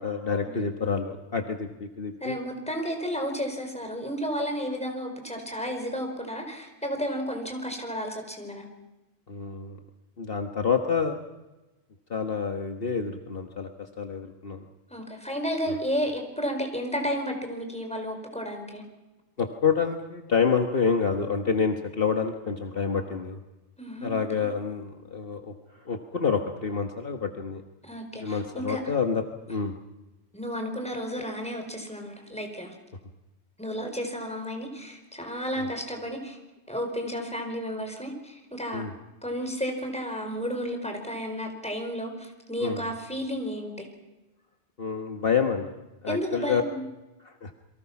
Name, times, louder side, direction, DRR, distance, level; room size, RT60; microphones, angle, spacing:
voice 1, 0.0-2.4 9.3-9.8 10.2-11.2 12.1-14.7 15.7-15.8 19.4-23.4 24.0-27.6 28.1-29.8 35.6-35.7 38.7-38.9 42.6-42.9 44.8-45.8 46.0-46.6 47.2-47.5, left 5 dB, 55° left, 5 dB, 1.6 m, -28 dB
voice 2, 2.2-8.7 14.9-18.8 23.8-24.1 24.4-24.5 27.8-28.8 30.3-32.7 33.6-36.4 36.7-38.9 39.2-43.9 46.1-46.8, equal, 5° left, 3 dB, 4.7 m, -32 dB
29.0 x 23.0 x 6.0 m, 1.0 s
omnidirectional pair, 1.1 m